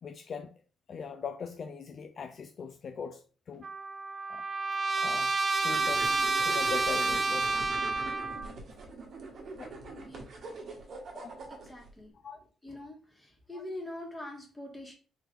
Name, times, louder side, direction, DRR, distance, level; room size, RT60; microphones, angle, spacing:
voice 1, 0.0-0.5 0.9-3.7 4.3-4.5 5.0-5.3 5.6-6.1 6.4-7.7 9.6-9.7 11.1-11.3 12.2-12.4, left 6 dB, 50° left, 0.4 m, -40 dB
Trumpet, 3.6-8.5, right 3 dB, 35° right, 0.5 m, -29 dB
sound 1, 5.6-11.9, right 3 dB, 55° right, 1.0 m, -43 dB
voice 2, 11.7-12.1 12.6-14.9, left 1 dB, 15° left, 1.5 m, -43 dB
3.7 x 2.9 x 3.1 m
cardioid pair, 90°, 0 cm